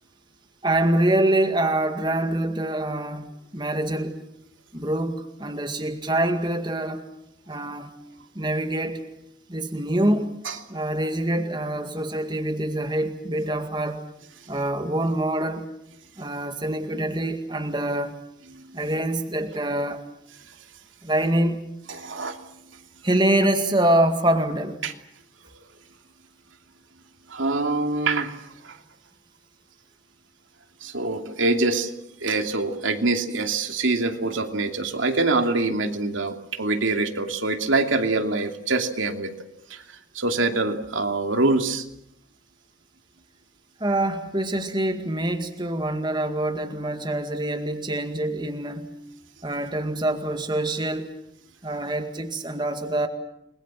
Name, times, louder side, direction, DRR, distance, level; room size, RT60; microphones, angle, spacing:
voice 1, 0.6-4.2 4.7-7.1 7.5-7.9 8.4-9.0 9.5-10.3 10.7-14.0 14.5-15.7 16.2-18.2 18.7-20.0 21.0-21.6 23.0-24.8 43.8-48.9 49.4-51.1 51.6-53.1, right 1 dB, 25° right, 6 dB, 2.0 m, -25 dB
voice 2, 21.9-22.5 24.8-24.9 27.3-28.8 30.8-31.9 32.2-39.3 39.7-41.8, right 3 dB, 85° right, 5 dB, 2.7 m, -25 dB
30.0 x 21.5 x 7.6 m, 0.79 s
head